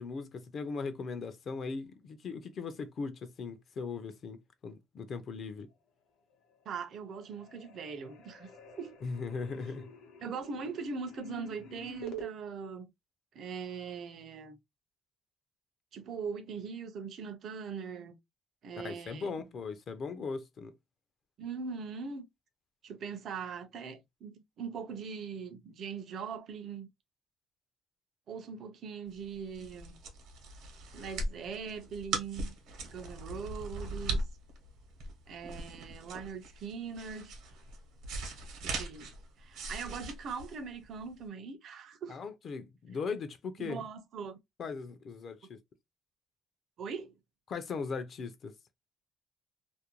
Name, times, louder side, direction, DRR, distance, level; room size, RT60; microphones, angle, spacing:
voice 1, 0.0-5.7 9.0-9.9 18.8-20.7 42.1-43.8 44.6-45.6 47.5-48.5, left 4 dB, 45° left, 0.4 m, -39 dB
sound 1, 6.3-6.9 7.1-12.3, right 2 dB, 90° left, 0.7 m, -48 dB
voice 2, 6.7-8.5 8.8-9.0 10.2-12.9 13.3-14.6 15.9-18.2 18.6-19.5 21.4-22.3 22.8-26.9 28.3-30.0 30.9-32.5 32.8-34.2 35.3-37.3 38.6-39.1 39.4-42.2 43.6-44.4 46.8-47.1, right 5 dB, 50° right, 0.5 m, -41 dB
sound 2, 29.2-41.2, right 2 dB, 80° right, 0.9 m, -40 dB
2.5 x 2.1 x 2.8 m
cardioid pair, 145°, 0 cm